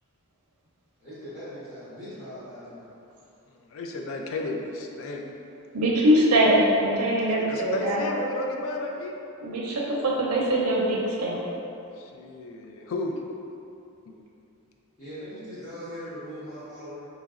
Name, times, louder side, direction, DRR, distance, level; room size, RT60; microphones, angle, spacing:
voice 1, 1.0-2.8 15.0-17.0, equal, 30° left, -14 dB, 1.1 m, -40 dB
voice 2, 3.7-5.2 7.3-9.1 12.0-13.1, left 2 dB, 60° left, 2 dB, 0.4 m, -32 dB
voice 3, 5.7-8.0 9.4-11.4, right 1 dB, 75° right, -4 dB, 0.6 m, -22 dB
3.9 x 3.0 x 2.4 m, 2.7 s
head